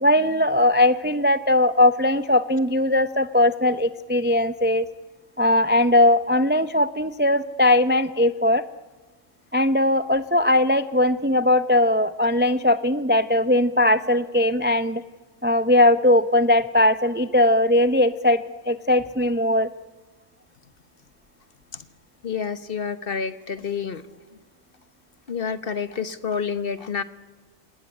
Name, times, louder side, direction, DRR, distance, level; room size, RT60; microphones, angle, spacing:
voice 1, 0.0-4.9 5.4-8.6 9.5-15.0 15.4-19.7, left 1 dB, 10° right, 13 dB, 0.5 m, -19 dB
voice 2, 22.2-24.0 25.3-27.0, left 6 dB, 45° left, 13 dB, 1.2 m, -28 dB
28.5 x 19.0 x 9.9 m, 1.3 s
omnidirectional pair, 1.4 m